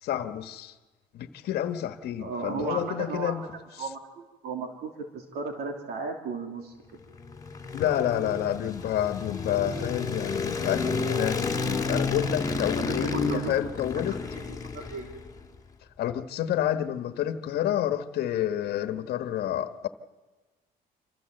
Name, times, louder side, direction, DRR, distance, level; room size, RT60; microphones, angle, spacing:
voice 1, 0.0-0.8 1.1-3.4 3.8-3.9 7.7-14.2 16.0-19.9, left 11 dB, 70° left, 1.3 m, -29 dB
voice 2, 2.2-3.5 3.8-6.7 12.8-15.1, right 4 dB, 70° right, 3.0 m, -35 dB
sound 1, 7.0-15.4, left 4 dB, 20° left, 2.1 m, -31 dB
27.0 x 14.5 x 7.8 m
cardioid pair, 110°, 17 cm